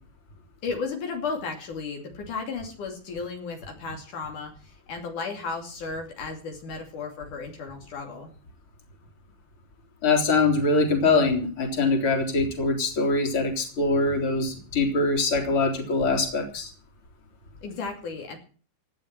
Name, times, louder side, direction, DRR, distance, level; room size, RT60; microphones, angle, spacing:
voice 1, 0.6-4.5 4.9-8.3 17.6-18.4, left 4 dB, 70° left, 2 dB, 4.2 m, -34 dB
voice 2, 10.0-16.7, left 3 dB, 40° left, 3 dB, 4.3 m, -23 dB
18.0 x 11.5 x 5.9 m, 0.40 s
omnidirectional pair, 3.7 m